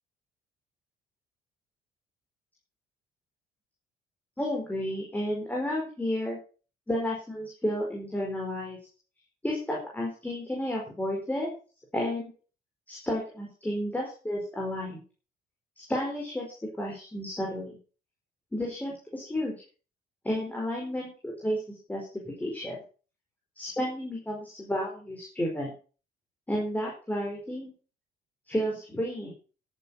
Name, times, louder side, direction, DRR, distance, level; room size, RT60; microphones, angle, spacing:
voice 1, 4.4-6.4 6.9-8.8 9.4-11.5 11.9-12.3 12.9-15.0 15.8-16.5 16.8-17.8 18.5-19.5 20.2-22.8 23.6-25.7 26.5-27.7 28.5-29.3, equal, 10° left, -2 dB, 4.8 m, -32 dB
11.5 x 9.2 x 5.5 m, 0.37 s
cardioid pair, 110°, 17 cm